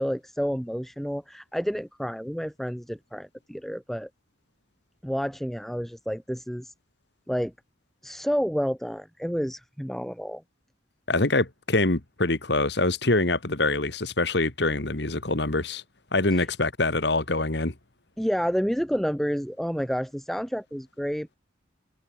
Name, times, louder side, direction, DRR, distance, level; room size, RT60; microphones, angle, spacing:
voice 1, 0.0-4.1 5.0-6.7 7.3-7.5 8.0-10.4 16.3-16.5 18.2-21.4, equal, ahead, 2.6 m, -29 dB
voice 2, 11.1-15.8 16.1-17.7, left 2 dB, 60° left, 1.8 m, -25 dB
head